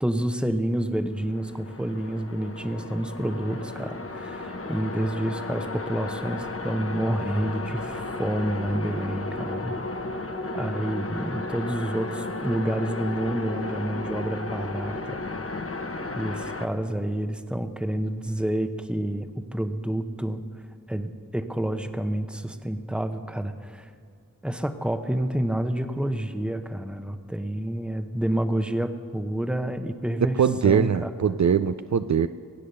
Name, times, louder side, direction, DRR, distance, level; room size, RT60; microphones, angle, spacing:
voice 1, 0.0-9.8 10.5-15.2 16.2-20.4 20.9-23.9 24.4-31.4, right 1 dB, 5° right, 9 dB, 0.8 m, -29 dB
sound 1, 1.1-16.7, left 2 dB, 40° left, 1.1 m, -34 dB
voice 2, 30.4-32.3, right 7 dB, 55° right, 12 dB, 0.4 m, -22 dB
23.5 x 8.5 x 6.7 m, 2.2 s
wide cardioid pair, 60°, 33 cm